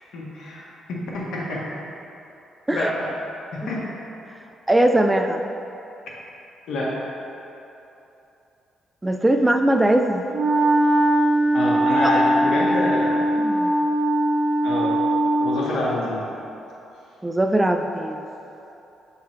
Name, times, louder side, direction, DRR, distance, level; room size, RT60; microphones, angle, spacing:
voice 1, 0.1-1.7 2.7-3.1 3.7-3.8 6.7-7.1 11.5-13.3 14.6-15.0 15.4-16.2, left 1 dB, 75° left, -4 dB, 1.4 m, -27 dB
voice 2, 4.7-5.4 9.0-10.2 12.0-12.2 13.4-13.7 17.2-18.3, right 1 dB, 10° right, 5 dB, 0.3 m, -20 dB
Wind instrument woodwind instrument, 10.3-15.7, right 1 dB, 75° right, 0.7 m, -20 dB
7.2 x 3.8 x 4.5 m, 2.9 s
cardioid pair, 90°, 0 cm